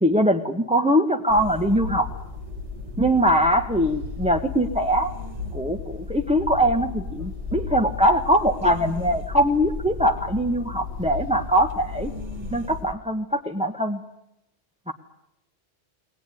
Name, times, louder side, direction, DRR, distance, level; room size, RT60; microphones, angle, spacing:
voice 1, 0.0-2.1 3.0-5.1 5.5-12.1 12.5-14.0 14.9-15.0, equal, 5° right, 4 dB, 1.1 m, -22 dB
sound 1, 1.3-13.0, left 4 dB, 30° right, 1.8 m, -34 dB
22.5 x 19.5 x 9.8 m, 0.86 s
omnidirectional pair, 1.1 m